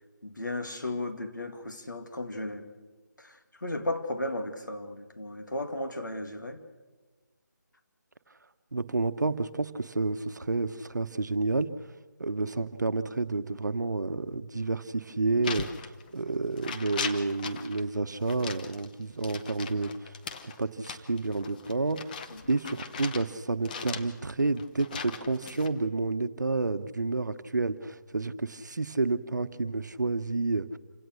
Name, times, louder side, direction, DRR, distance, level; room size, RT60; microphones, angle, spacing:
voice 1, 0.2-2.7 3.2-6.6 22.3-22.4, left 1 dB, 80° left, 2.4 m, -35 dB
voice 2, 8.7-11.7 12.2-20.1 20.4-22.2 22.5-30.8, right 3 dB, 70° right, 1.2 m, -30 dB
sound 1, 15.4-16.3 16.6-17.8 18.2-23.3 23.7-25.7, left 6 dB, 25° left, 1.1 m, -39 dB
27.5 x 17.0 x 6.5 m
figure-of-eight pair, 155°, 10 cm